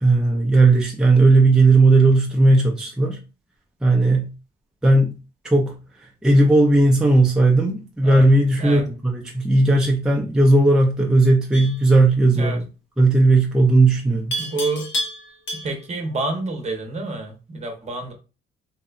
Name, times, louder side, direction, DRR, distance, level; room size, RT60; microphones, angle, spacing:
voice 1, 0.0-3.2 3.8-4.3 4.8-5.2 5.4-5.8 6.2-12.7 13.0-14.4, right 2 dB, 5° right, 0 dB, 0.4 m, -16 dB
Livestock farm animals working animals, 11.5-11.9 14.3-15.9, equal, 70° left, 0.8 m, -29 dB
voice 2, 14.4-14.9 15.5-18.1, right 3 dB, 35° right, 3 dB, 0.7 m, -28 dB
2.7 x 2.1 x 2.4 m, 0.32 s
cardioid pair, 90°, 20 cm